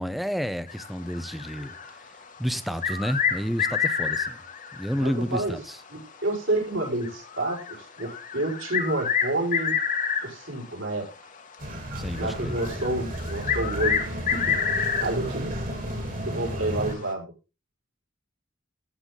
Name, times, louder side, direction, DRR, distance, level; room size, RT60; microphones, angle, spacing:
voice 1, 0.0-1.7 2.4-4.4 4.7-5.8 12.0-12.6, equal, ahead, 0.8 m, -30 dB
sound 1, 0.7-2.2 2.6-5.3 5.6-5.7 6.3-6.4 7.0-10.6 11.4-11.6 12.1-15.3 15.7-15.8 16.9-17.1, left 7 dB, 40° left, 1.5 m, -28 dB
voice 2, 4.9-5.6 5.9-9.7 10.2-11.1 12.2-14.5 15.0-15.8 16.3-17.3, right 2 dB, 70° right, 5.8 m, -29 dB
sound 2, 11.6-17.0, equal, 40° right, 3.0 m, -33 dB
14.0 x 7.9 x 3.9 m
head